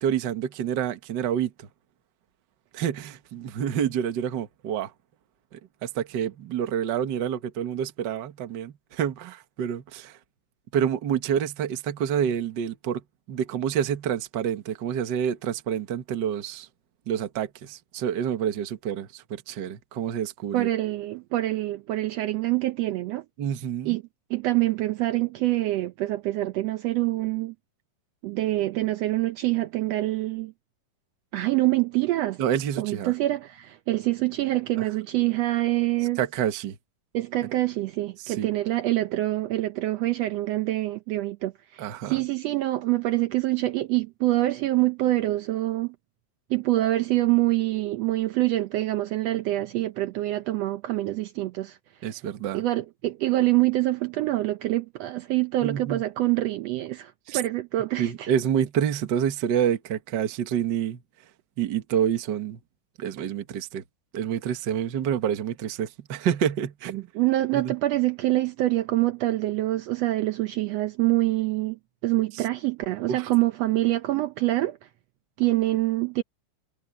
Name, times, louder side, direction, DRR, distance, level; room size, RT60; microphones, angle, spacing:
voice 1, 0.0-1.7 2.7-4.9 5.5-10.2 10.7-13.0 13.3-16.7 17.1-20.7 23.4-24.0 32.4-33.1 36.2-36.8 38.2-38.5 41.8-42.2 52.0-52.6 55.6-56.0 57.3-57.4 58.0-61.0 61.6-62.6 63.0-63.8 64.1-67.1 67.5-67.7 72.3-72.4 73.1-73.3, right 9 dB, 55° right, 1.3 m, -28 dB
voice 2, 20.5-23.2 23.8-24.0 24.3-27.5 28.2-30.5 31.3-32.4 32.8-36.2 37.1-45.9 46.5-51.8 52.5-58.3 67.1-74.8 75.4-76.2, right 17 dB, 90° right, 1.4 m, -25 dB
omnidirectional pair, 3.8 m